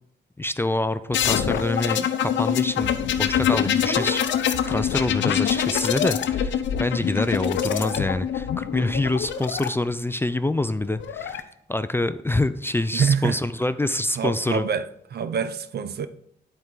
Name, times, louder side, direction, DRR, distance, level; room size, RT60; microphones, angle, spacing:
voice 1, 0.4-11.4 11.7-14.6, left 2 dB, 10° left, 0.3 m, -26 dB
sound 1, 1.1-9.7 10.8-11.4, left 9 dB, 90° left, 0.6 m, -24 dB
voice 2, 12.9-13.4 14.2-16.1, right 6 dB, 60° right, 0.6 m, -25 dB
10.5 x 4.6 x 3.8 m
cardioid pair, 100°, 18 cm